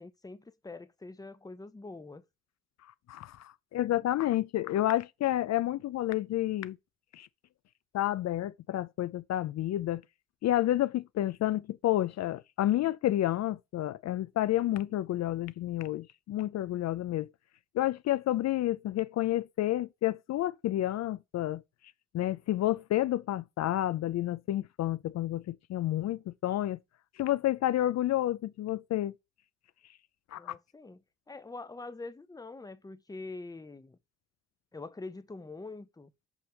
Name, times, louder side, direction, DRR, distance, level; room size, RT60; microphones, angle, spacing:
voice 1, 0.0-2.2 30.4-31.0 31.3-34.0 34.7-36.1, left 3 dB, 10° left, 0.8 m, -44 dB
voice 2, 3.1-6.8 7.1-7.3 7.9-10.0 10.4-17.3 17.7-21.6 22.1-26.8 27.2-29.1 30.3-30.5, left 14 dB, 60° left, 0.5 m, -30 dB
7.2 x 3.4 x 6.3 m
cardioid pair, 90°, 30 cm